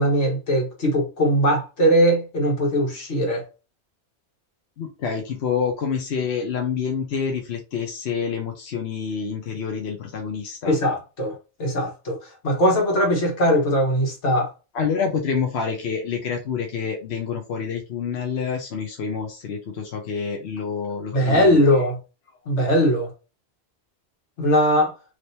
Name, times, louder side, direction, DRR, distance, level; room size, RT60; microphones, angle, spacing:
voice 1, 0.0-3.5 10.6-14.5 21.1-22.0 22.5-23.1 24.4-24.9, equal, 90° left, 1.7 m, -20 dB
voice 2, 4.8-10.8 14.7-21.8, left 6 dB, 70° left, 1.0 m, -27 dB
4.9 x 3.0 x 2.7 m
omnidirectional pair, 1.1 m